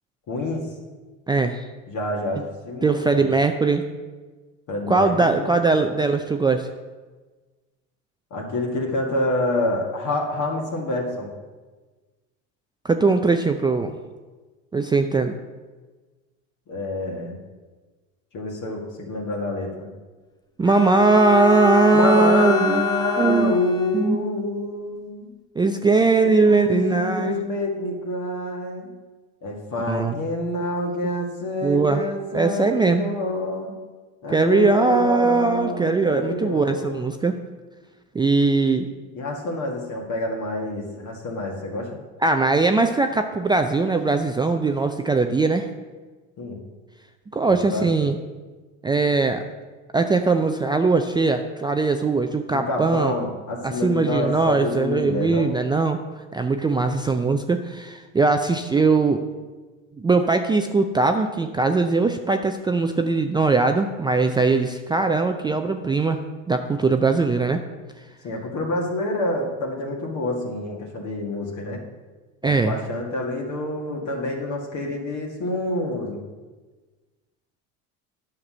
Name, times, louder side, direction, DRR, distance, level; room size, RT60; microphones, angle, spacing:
voice 1, 0.3-0.7 1.9-3.3 4.7-5.5 8.3-11.3 16.7-17.4 18.3-19.9 21.9-25.3 26.5-28.9 29.4-33.7 34.2-37.0 39.1-42.0 46.4-46.6 47.4-48.1 52.5-55.5 68.2-71.8 72.4-76.2, left 2 dB, 50° left, -1 dB, 1.9 m, -27 dB
voice 2, 1.3-1.7 2.8-3.8 4.9-6.7 12.8-14.0 14.7-15.4 20.6-22.9 23.2-23.6 23.9-24.2 25.6-27.4 29.9-30.4 31.6-32.0 32.3-33.1 34.3-37.4 38.1-38.9 42.2-45.7 47.3-48.2 48.8-49.4 49.9-53.1 53.6-56.0 56.3-59.2 60.0-67.6 72.4-72.8, right 3 dB, 10° right, 6 dB, 0.4 m, -20 dB
Bowed string instrument, 20.7-24.2, left 2 dB, 10° left, 0.8 m, -27 dB
9.5 x 5.9 x 6.2 m, 1.3 s
supercardioid pair, 100°, 39 cm